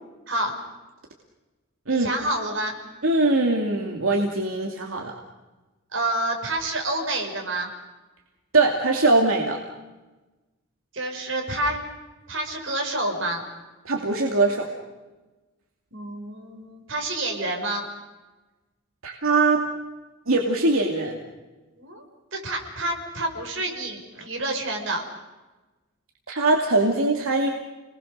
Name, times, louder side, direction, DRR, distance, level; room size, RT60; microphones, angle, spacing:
voice 1, 1.9-2.8 5.9-7.7 10.9-11.8 12.3-13.4 15.9-17.9 21.8-22.0 22.3-25.0, right 1 dB, 65° right, 2 dB, 5.8 m, -28 dB
voice 2, 3.0-5.1 8.5-9.6 13.8-14.7 19.0-19.7 20.3-21.2 26.3-27.5, right 2 dB, 85° right, 1 dB, 2.6 m, -21 dB
30.0 x 20.5 x 6.7 m, 1.2 s
head